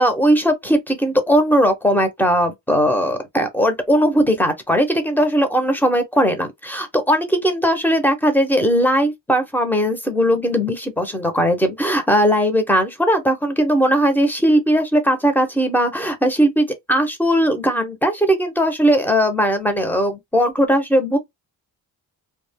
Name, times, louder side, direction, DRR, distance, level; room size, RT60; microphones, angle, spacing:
voice 1, 0.0-21.2, equal, 5° left, 0.7 m, -18 dB
2.3 x 2.2 x 3.4 m
cardioid pair, 105°, 37 cm